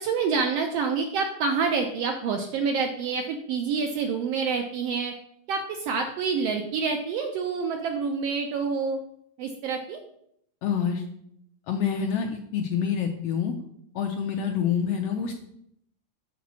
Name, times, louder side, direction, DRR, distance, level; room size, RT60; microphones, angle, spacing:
voice 1, 0.0-5.1 5.5-9.0 9.4-10.0, right 5 dB, 80° right, 4 dB, 1.5 m, -27 dB
voice 2, 10.6-11.0 11.7-13.5 13.9-15.3, left 7 dB, 75° left, 3 dB, 1.5 m, -27 dB
7.2 x 4.1 x 6.1 m, 0.72 s
omnidirectional pair, 3.4 m